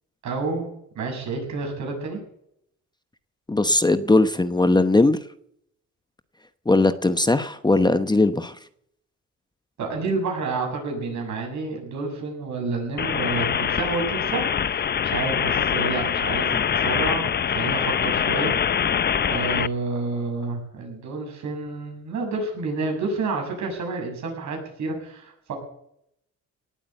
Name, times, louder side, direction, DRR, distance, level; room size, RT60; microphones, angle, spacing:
voice 1, 0.2-0.7 1.0-2.2 9.8-18.5 19.3-25.5, right 3 dB, 70° right, 2 dB, 7.4 m, -29 dB
voice 2, 3.5-5.2 6.7-8.6, left 2 dB, 15° left, 10 dB, 0.9 m, -19 dB
sound 1, 13.0-19.7, left 8 dB, 35° left, 0.5 m, -24 dB
18.5 x 8.7 x 8.0 m, 0.72 s
cardioid pair, 90°, 30 cm